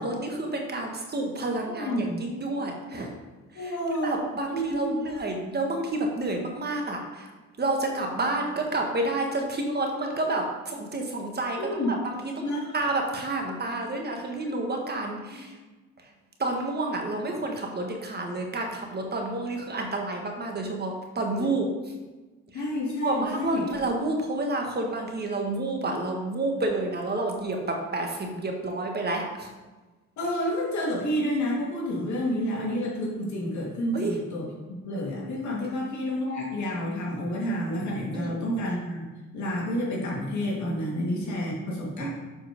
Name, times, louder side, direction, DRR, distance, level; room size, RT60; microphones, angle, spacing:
voice 1, 0.0-3.1 3.5-3.8 4.0-7.3 7.6-12.4 12.7-15.6 16.0-16.1 16.4-21.6 22.5-22.7 23.0-29.5 33.9-34.2 38.1-38.4 42.0-42.1, right 2 dB, 35° right, 2 dB, 1.5 m, -29 dB
voice 2, 1.7-2.2 3.5-4.2 4.5-5.0 11.6-11.9 12.4-12.7 21.3-21.4 22.5-23.6 30.2-34.5 34.8-39.0 39.3-42.1, equal, 70° left, -4 dB, 2.4 m, -29 dB
7.5 x 4.6 x 5.2 m, 1.2 s
cardioid pair, 90°, 30 cm